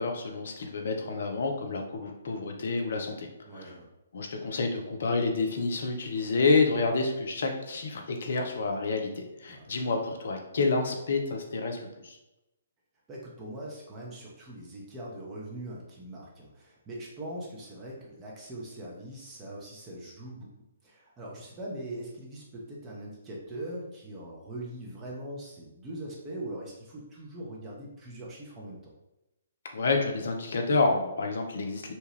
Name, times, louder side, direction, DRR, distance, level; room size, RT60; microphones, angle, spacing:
voice 1, 0.0-3.3 3.5-3.7 4.1-12.2 29.7-31.9, left 3 dB, 60° left, 3 dB, 0.6 m, -29 dB
voice 2, 3.5-3.9 9.5-9.7 13.1-20.5 20.8-28.9, right 1 dB, 20° right, -4 dB, 0.6 m, -41 dB
2.9 x 2.2 x 3.1 m, 0.93 s
figure-of-eight pair, 125°, 0 cm